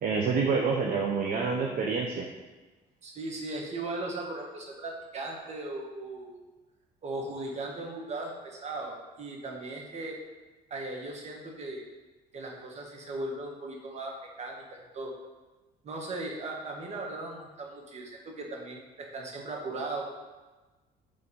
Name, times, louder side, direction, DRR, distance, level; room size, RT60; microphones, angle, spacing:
voice 1, 0.0-2.3, right 5 dB, 60° right, 0 dB, 0.9 m, -27 dB
voice 2, 3.0-6.4 7.0-10.2 10.7-11.8 12.3-15.1 15.8-20.1, right 2 dB, 40° right, 0 dB, 1.7 m, -38 dB
8.7 x 3.8 x 5.4 m, 1.2 s
cardioid pair, 110°, 17 cm